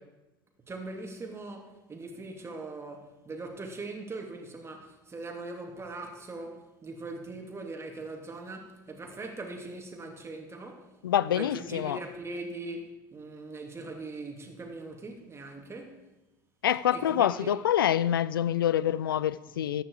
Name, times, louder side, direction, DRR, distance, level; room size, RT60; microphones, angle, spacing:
voice 1, 0.7-10.9 11.3-16.0 16.9-17.6 19.5-19.6, right 2 dB, 25° right, 2.8 m, -41 dB
voice 2, 11.0-12.0 16.6-19.8, left 10 dB, 90° left, 0.4 m, -26 dB
14.0 x 9.9 x 4.9 m
hypercardioid pair, 80°, 11 cm